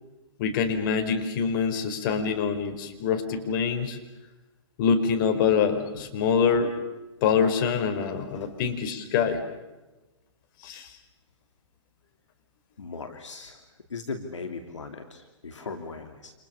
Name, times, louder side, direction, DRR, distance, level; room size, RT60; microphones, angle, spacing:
voice 1, 0.4-4.0 4.8-6.7 7.2-9.4 10.6-10.9, left 6 dB, 40° left, 6 dB, 4.8 m, -25 dB
voice 2, 12.8-13.6 13.9-16.3, left 4 dB, 75° left, 6 dB, 3.0 m, -38 dB
29.5 x 28.0 x 7.0 m, 1.1 s
figure-of-eight pair, 120°, 16 cm